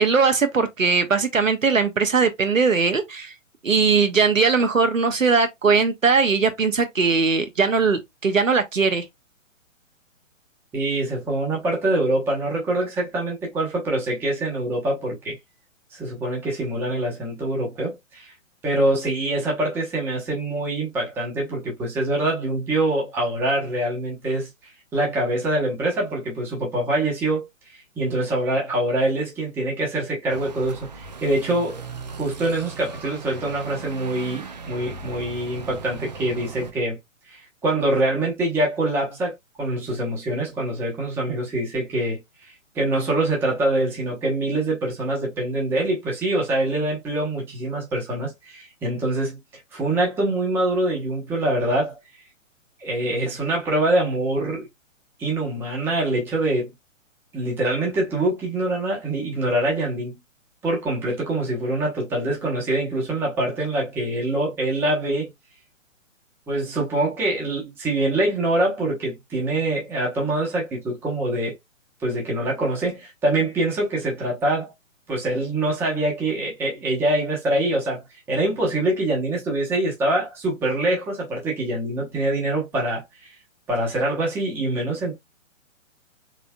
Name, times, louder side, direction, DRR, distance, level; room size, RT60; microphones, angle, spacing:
voice 1, 0.0-3.3 3.6-9.0, right 5 dB, 75° right, 1.0 m, -20 dB
voice 2, 10.7-15.4 15.9-18.3 18.6-31.8 32.1-37.0 37.3-49.4 49.7-52.0 52.8-54.7 55.2-56.7 57.3-60.2 60.6-65.3 66.5-71.5 72.0-74.7 75.1-83.3 83.7-85.1, right 1 dB, 5° right, 0.8 m, -24 dB
sound 1, 30.3-36.7, right 4 dB, 35° right, 0.4 m, -38 dB
3.8 x 3.6 x 2.2 m
figure-of-eight pair, 125°, 39 cm